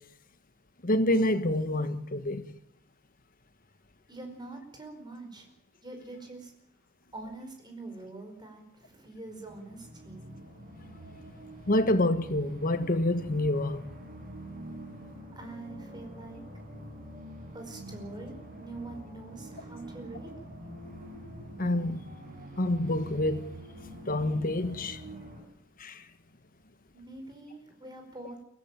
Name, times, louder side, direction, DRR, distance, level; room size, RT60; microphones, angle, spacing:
voice 1, 0.8-2.5 11.7-13.9 21.6-22.0 22.6-23.5 24.1-25.0 25.8-26.0, left 1 dB, 40° left, 1.4 m, -27 dB
voice 2, 4.1-5.5 5.8-6.5 7.1-10.3 15.3-16.4 17.5-20.3 26.9-28.4, right 2 dB, 20° right, 4.9 m, -44 dB
sound 1, 9.3-25.4, right 1 dB, 40° right, 6.9 m, -46 dB
23.5 x 16.0 x 9.1 m
head